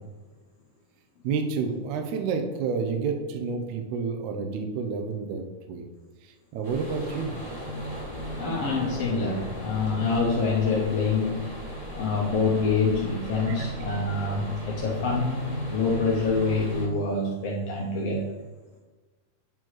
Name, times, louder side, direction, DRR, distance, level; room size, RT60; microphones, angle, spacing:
voice 1, 1.2-5.4 5.7-5.9 6.2-7.3 13.5-13.7, right 5 dB, 80° right, 5 dB, 1.9 m, -29 dB
sound 1, 6.6-16.9, equal, 15° right, 1.3 m, -39 dB
sound 2, 7.6-16.9, right 1 dB, 55° left, 2.4 m, -38 dB
voice 2, 8.4-11.4 11.9-18.3, left 4 dB, 80° left, -2 dB, 1.3 m, -26 dB
9.0 x 4.0 x 3.1 m, 1.3 s
omnidirectional pair, 3.7 m